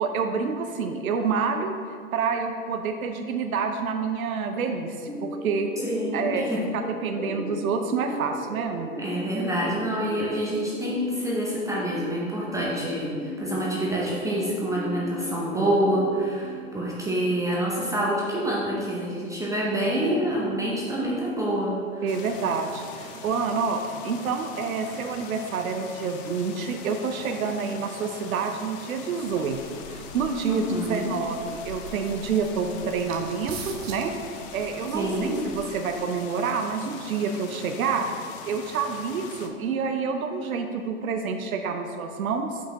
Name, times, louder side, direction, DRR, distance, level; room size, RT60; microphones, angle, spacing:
voice 1, 0.0-1.7 2.1-5.7 6.1-6.4 6.7-8.9 22.0-29.6 29.9-35.3 35.5-38.1 38.5-42.6, right 5 dB, 75° right, 6 dB, 0.6 m, -28 dB
sound 1, 5.1-16.3, equal, 15° left, 1.3 m, -37 dB
voice 2, 5.8-6.6 8.9-22.1 30.4-31.1 34.9-35.4, right 1 dB, 10° right, -6 dB, 0.7 m, -27 dB
sound 2, 22.1-39.5, left 5 dB, 30° left, 0.6 m, -42 dB
sound 3, 29.4-35.9, right 2 dB, 50° right, 0.9 m, -44 dB
7.2 x 5.6 x 2.9 m, 2.1 s
hypercardioid pair, 110°, 42 cm